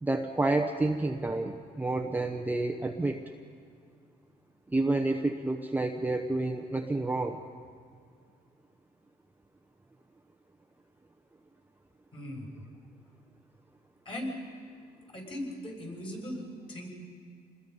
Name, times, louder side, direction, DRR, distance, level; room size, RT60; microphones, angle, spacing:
voice 1, 0.0-3.2 4.7-7.4, right 2 dB, 10° right, 4 dB, 0.9 m, -29 dB
voice 2, 12.1-12.5 14.0-14.3 15.1-16.9, equal, 30° left, -1 dB, 6.3 m, -38 dB
27.5 x 20.5 x 5.4 m, 2.2 s
cardioid pair, 120°, 17 cm